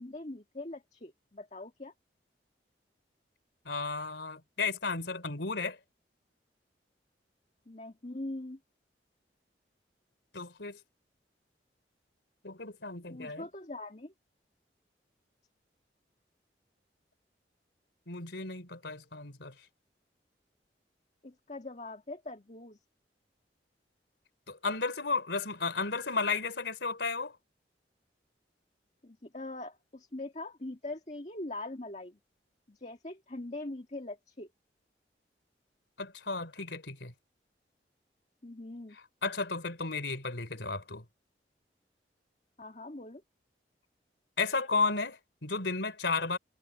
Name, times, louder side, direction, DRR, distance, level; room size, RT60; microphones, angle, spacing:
voice 1, 0.0-1.9 7.7-8.6 13.1-14.1 21.2-22.8 29.0-32.2 32.7-34.5 38.4-39.0 42.6-43.2, left 2 dB, 40° left, 1.9 m, -42 dB
voice 2, 3.7-5.8 10.3-10.8 12.4-13.5 18.1-19.5 24.5-27.4 36.0-37.1 39.2-41.0 44.4-46.4, left 4 dB, 90° left, 3.6 m, -33 dB
head